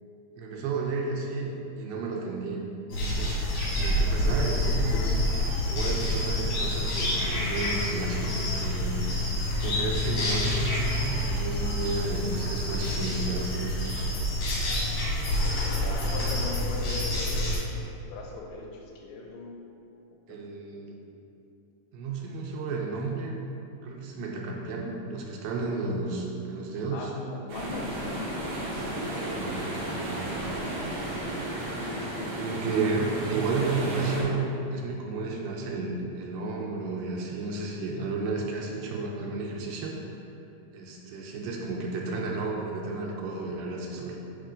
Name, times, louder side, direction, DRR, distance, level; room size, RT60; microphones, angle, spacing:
voice 1, 0.4-2.6 3.0-3.3 3.8-5.2 5.7-14.1 20.3-21.0 21.9-23.4 23.8-27.1 29.1-30.3 32.4-40.0 40.7-44.2, right 3 dB, 80° right, -1 dB, 2.3 m, -32 dB
sound 1, 2.9-17.6, left 1 dB, 65° left, 1.6 m, -28 dB
voice 2, 15.7-19.5 20.3-20.5 26.9-29.0 31.8-32.3, left 2 dB, 80° left, 0 dB, 2.3 m, -40 dB
sound 2, 27.5-34.2, right 1 dB, 65° right, 1.9 m, -33 dB
6.3 x 3.3 x 5.0 m, 2.8 s
omnidirectional pair, 4.4 m